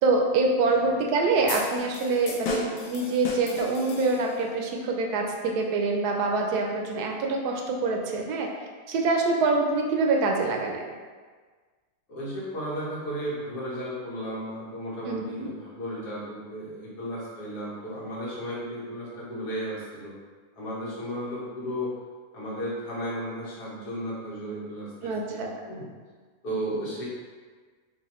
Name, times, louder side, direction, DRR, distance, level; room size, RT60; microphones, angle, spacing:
voice 1, 0.0-8.5 8.9-10.8 15.0-15.5 25.0-25.5, right 3 dB, 80° right, 1 dB, 1.1 m, -25 dB
sound 1, 1.5-4.5, left 2 dB, 65° left, 1.0 m, -35 dB
voice 2, 12.1-20.1 20.6-21.9 22.3-25.9 26.4-27.0, equal, 85° left, -8 dB, 1.8 m, -34 dB
4.7 x 2.5 x 3.0 m, 1.5 s
omnidirectional pair, 1.7 m